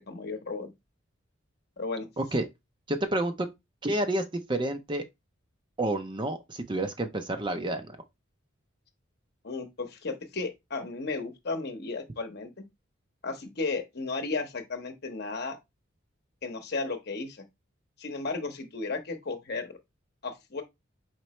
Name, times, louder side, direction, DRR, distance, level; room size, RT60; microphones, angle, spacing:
voice 1, 0.1-0.7 1.8-2.1 9.4-12.6 13.2-15.6 16.4-17.4 18.0-19.8 20.2-20.6, left 3 dB, 55° left, 0.9 m, -34 dB
voice 2, 2.2-2.5 2.9-3.5 3.8-5.0 5.8-8.0, right 1 dB, 25° right, 0.5 m, -29 dB
4.4 x 3.9 x 3.1 m
head